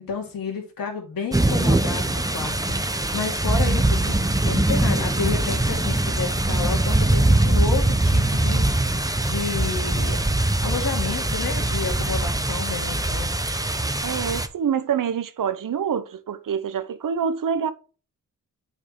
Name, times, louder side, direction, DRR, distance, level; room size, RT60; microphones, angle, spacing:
voice 1, 0.1-10.2 10.6-13.3, left 5 dB, 85° left, 2.6 m, -31 dB
sound 1, 1.3-14.5, right 1 dB, 10° right, 0.9 m, -22 dB
voice 2, 14.0-17.7, right 7 dB, 70° right, 0.9 m, -26 dB
8.9 x 4.7 x 3.9 m
cardioid pair, 55°, 34 cm